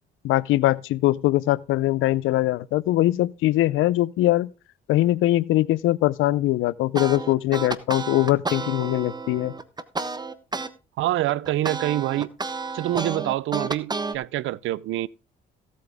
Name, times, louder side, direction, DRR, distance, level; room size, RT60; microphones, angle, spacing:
voice 1, 0.2-4.5 4.9-9.5, left 16 dB, 90° left, 0.6 m, -22 dB
sound 1, 6.9-10.7 11.1-14.1, right 3 dB, 20° right, 1.2 m, -31 dB
voice 2, 11.0-12.3 12.7-15.1, right 15 dB, 80° right, 0.6 m, -26 dB
16.5 x 8.4 x 3.5 m
cardioid pair, 90°, 20 cm